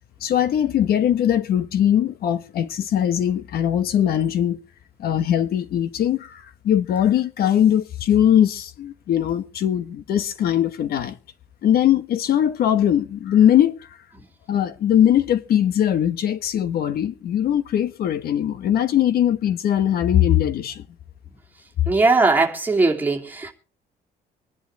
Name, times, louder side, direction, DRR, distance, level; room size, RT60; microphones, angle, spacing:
voice 1, 0.2-4.6 5.0-11.2 11.6-14.0 14.5-20.8, left 10 dB, 60° left, 1.3 m, -20 dB
voice 2, 21.9-23.5, right 3 dB, 10° right, 2.8 m, -19 dB
24.5 x 11.0 x 3.3 m
cardioid pair, 155°, 18 cm